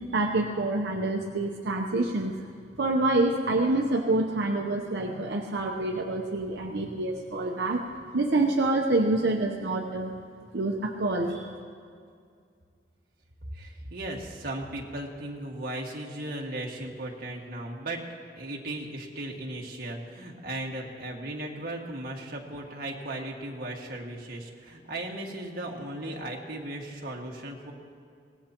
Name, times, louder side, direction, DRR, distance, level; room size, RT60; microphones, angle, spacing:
voice 1, 0.1-2.3 2.8-7.8 8.1-10.1 10.5-11.5, right 2 dB, 80° right, 1 dB, 0.8 m, -27 dB
voice 2, 13.5-18.0 18.4-27.7, right 1 dB, 55° right, -1 dB, 1.9 m, -36 dB
24.5 x 18.5 x 3.0 m, 2.3 s
head